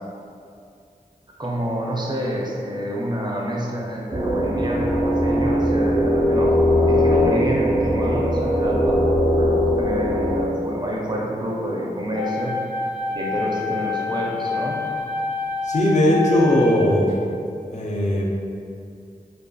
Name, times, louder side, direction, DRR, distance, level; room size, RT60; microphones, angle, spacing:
voice 1, 1.4-6.6 6.9-9.0 9.3-12.6 13.1-14.8, equal, 30° right, -3 dB, 0.4 m, -28 dB
sound 1, 4.1-10.4, equal, 70° right, 0.6 m, -20 dB
sound 2, 12.1-17.1, left 4 dB, 75° left, 0.9 m, -27 dB
voice 2, 15.6-17.2 17.7-18.2, left 1 dB, 55° left, -3 dB, 0.4 m, -18 dB
2.6 x 2.3 x 2.2 m, 2.4 s
wide cardioid pair, 45°, 15 cm